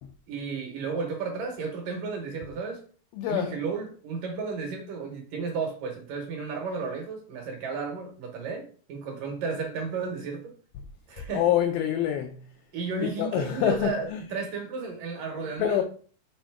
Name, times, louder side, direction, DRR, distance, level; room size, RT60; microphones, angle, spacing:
voice 1, 0.3-2.8 3.3-10.5 11.1-11.4 12.7-15.8, right 4 dB, 65° right, 2.3 m, -33 dB
voice 2, 3.1-3.6 11.2-12.4 13.0-14.2 15.4-15.8, left 10 dB, 85° left, 2.1 m, -27 dB
6.4 x 4.1 x 4.6 m
omnidirectional pair, 4.9 m